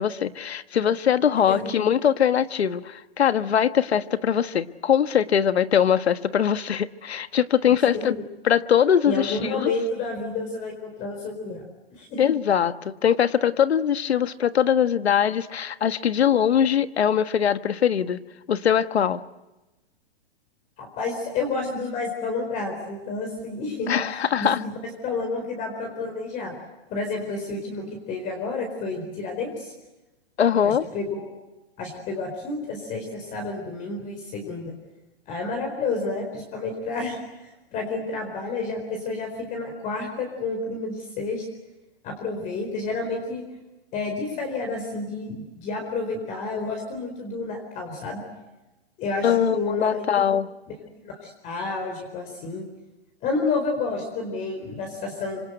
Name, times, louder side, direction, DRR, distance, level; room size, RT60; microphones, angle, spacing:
voice 1, 0.0-8.2 8.4-9.7 12.2-18.2 18.5-19.2 23.9-24.6 30.4-30.8 49.2-50.5, left 8 dB, 85° left, 12 dB, 1.5 m, -22 dB
voice 2, 9.0-11.6 11.9-12.2 20.8-24.8 25.0-26.5 26.9-29.7 30.6-31.3 31.8-34.7 35.3-37.2 37.7-41.4 42.0-43.4 43.9-48.2 49.0-50.0 51.0-52.7 53.2-55.4, left 3 dB, 25° left, 3 dB, 4.5 m, -30 dB
26.5 x 26.0 x 8.0 m, 1.0 s
hypercardioid pair, 155°, 31 cm